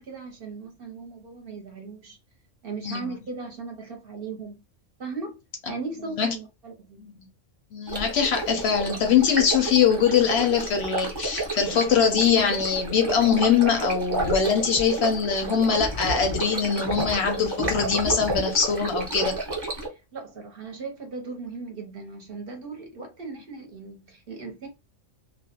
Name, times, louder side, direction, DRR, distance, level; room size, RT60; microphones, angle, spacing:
voice 1, 0.0-2.2 2.6-4.6 5.0-5.3 5.7-7.1 19.9-24.7, right 4 dB, 55° right, 0.8 m, -37 dB
voice 2, 7.7-19.4, left 7 dB, 65° left, 0.7 m, -22 dB
Stream, 7.9-19.9, right 2 dB, 20° right, 0.8 m, -31 dB
2.4 x 2.1 x 2.7 m
omnidirectional pair, 1.3 m